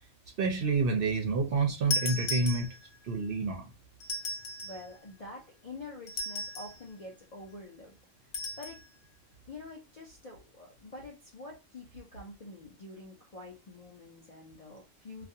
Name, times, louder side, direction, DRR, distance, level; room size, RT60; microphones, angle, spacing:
voice 1, 0.4-2.7 3.0-3.6, right 4 dB, 60° right, 0.6 m, -28 dB
sound 1, 1.9-3.1 4.0-4.9 6.1-6.8 8.3-8.8, left 1 dB, 65° left, 0.8 m, -35 dB
voice 2, 4.6-8.0 8.6-8.8 9.5-15.3, left 2 dB, 50° left, 0.4 m, -47 dB
2.4 x 2.2 x 2.6 m
omnidirectional pair, 1.3 m